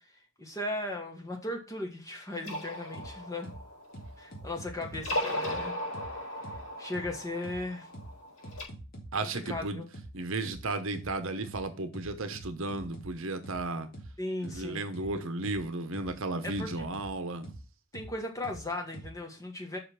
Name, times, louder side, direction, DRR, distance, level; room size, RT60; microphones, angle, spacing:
voice 1, 0.4-3.5 4.2-5.8 6.1-6.2 6.8-7.9 9.2-9.8 14.2-14.8 16.4-16.9 17.9-19.8, left 1 dB, 15° left, 1.4 m, -37 dB
sound 1, 2.3-4.5 4.9-8.6, left 1 dB, 80° left, 4.2 m, -37 dB
sound 2, 2.9-3.1 3.4-3.6 3.9-5.1 5.4-5.6 5.9-6.1 6.4-6.6 6.9-7.1 7.4-7.6 7.9-8.1 8.4-9.1 9.4-9.6 9.9-10.1 10.4-10.6 10.9-11.1 11.4-11.6 11.9-13.1 13.4-13.6 13.9-14.1 14.4-14.6 14.9-15.1 15.4-15.6 15.9-16.1 16.4-17.1 17.4-17.6 17.9-18.1 18.4-18.6 18.9-19.1, right 1 dB, 40° left, 2.3 m, -44 dB
voice 2, 9.1-9.8 10.1-13.9 14.4-17.5, right 2 dB, 65° right, 0.9 m, -34 dB
5.9 x 5.1 x 5.7 m
head